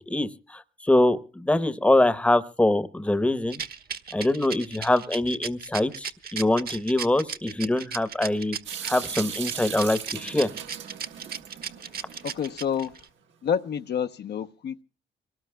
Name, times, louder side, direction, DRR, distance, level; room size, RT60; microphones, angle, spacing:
voice 1, 0.1-3.6 4.1-8.6 8.8-10.5, left 1 dB, 5° left, 13 dB, 0.9 m, -24 dB
Rattle, 3.5-13.1, right 7 dB, 50° right, 1.3 m, -35 dB
Water tap faucet / Sink (filling or washing) / Drip, 8.7-12.8, right 8 dB, 70° right, 1.5 m, -38 dB
voice 2, 12.2-12.9 13.4-14.8, left 8 dB, 55° left, 7 dB, 0.8 m, -28 dB
25.5 x 19.0 x 2.2 m, 0.35 s
cardioid pair, 90°, 20 cm